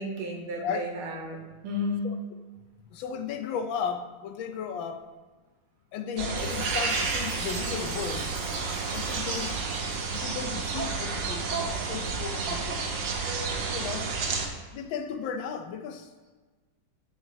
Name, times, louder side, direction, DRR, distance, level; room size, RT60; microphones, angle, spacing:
voice 1, 0.0-2.2, left 2 dB, 85° right, 1 dB, 2.0 m, -33 dB
voice 2, 0.5-0.9 2.0-2.1 2.9-5.1 5.9-8.4 8.9-9.6 10.1-12.8 13.7-14.2 14.7-16.1, left 7 dB, 75° left, 8 dB, 1.3 m, -35 dB
sound 1, 6.2-14.5, right 4 dB, 65° right, 1.5 m, -30 dB
Chime, 6.4-10.6, equal, 10° left, 2.1 m, -46 dB
10.5 x 5.5 x 2.9 m, 1.3 s
omnidirectional pair, 2.2 m